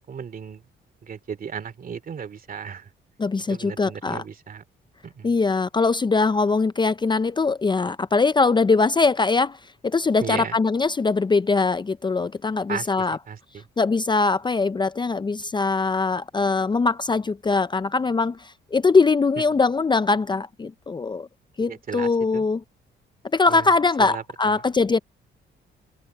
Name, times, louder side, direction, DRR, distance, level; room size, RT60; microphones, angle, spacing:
voice 1, 0.1-0.6 1.0-2.9 3.5-4.6 5.0-5.3 10.2-10.6 12.7-13.6 19.5-19.6 21.7-22.5 23.5-24.2 24.5-24.6, right 7 dB, 45° right, 2.7 m, -35 dB
voice 2, 3.2-4.2 5.2-13.2 13.8-21.3 21.6-22.6 23.3-25.0, left 4 dB, 25° left, 0.6 m, -22 dB
cardioid pair, 90°, 20 cm